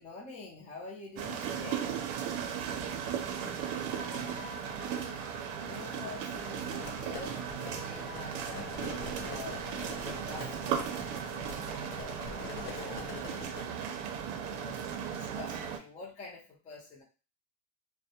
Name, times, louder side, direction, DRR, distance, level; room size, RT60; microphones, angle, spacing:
voice 1, 0.0-1.9 4.7-5.1 5.6-9.6 10.2-13.9 14.3-17.0, left 3 dB, 20° left, -4 dB, 0.4 m, -47 dB
sound 1, 1.2-15.8, right 8 dB, 90° right, 0.5 m, -36 dB
voice 2, 2.2-2.3, right 4 dB, 30° right, 0 dB, 0.6 m, -54 dB
sound 2, 3.9-12.6, left 5 dB, 60° left, 0.7 m, -52 dB
sound 3, 6.6-13.7, left 4 dB, 90° left, 0.9 m, -45 dB
2.2 x 2.1 x 2.7 m, 0.34 s
cardioid pair, 150°, 40 cm